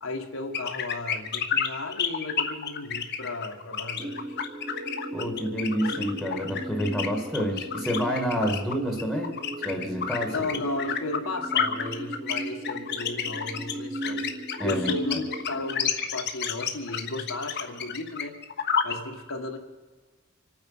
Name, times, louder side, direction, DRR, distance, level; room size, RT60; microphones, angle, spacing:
voice 1, 0.0-4.4 8.6-8.7 10.3-14.3 14.6-18.4 18.8-19.6, left 2 dB, 70° left, 3 dB, 1.8 m, -34 dB
sound 1, 0.5-18.9, left 7 dB, 55° left, 1.2 m, -30 dB
sound 2, 4.0-15.9, right 1 dB, 20° right, 0.9 m, -37 dB
voice 2, 5.1-9.3 9.6-10.6 14.6-15.2, equal, ahead, 3 dB, 1.9 m, -29 dB
26.0 x 9.2 x 5.6 m, 1.3 s
head